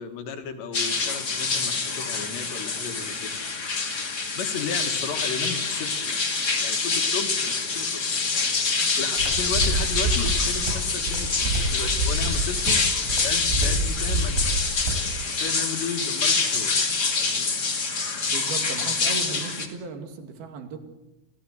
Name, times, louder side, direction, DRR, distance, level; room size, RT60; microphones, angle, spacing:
voice 1, 0.0-3.3 4.4-6.2 6.6-8.2 9.0-12.8 13.2-14.6 15.0-16.7 17.2-17.6, left 6 dB, 65° left, 5 dB, 3.9 m, -34 dB
sound 1, 0.7-19.7, left 4 dB, 45° left, 1.3 m, -26 dB
sound 2, 9.2-15.1, right 1 dB, 70° right, 7.2 m, -27 dB
voice 2, 18.2-20.8, right 5 dB, 55° right, 6 dB, 3.8 m, -36 dB
28.5 x 17.0 x 8.2 m, 0.96 s
omnidirectional pair, 5.9 m